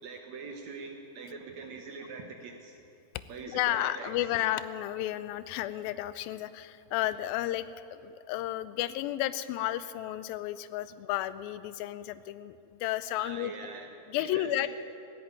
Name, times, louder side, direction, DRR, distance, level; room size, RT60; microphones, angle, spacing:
voice 1, 0.0-2.7 3.3-4.1 13.2-13.9 14.2-14.7, right 4 dB, 65° right, 3 dB, 1.9 m, -43 dB
voice 2, 3.5-13.5 14.1-14.7, left 14 dB, 90° left, 14 dB, 2.4 m, -32 dB
16.5 x 8.8 x 9.2 m, 2.7 s
omnidirectional pair, 4.1 m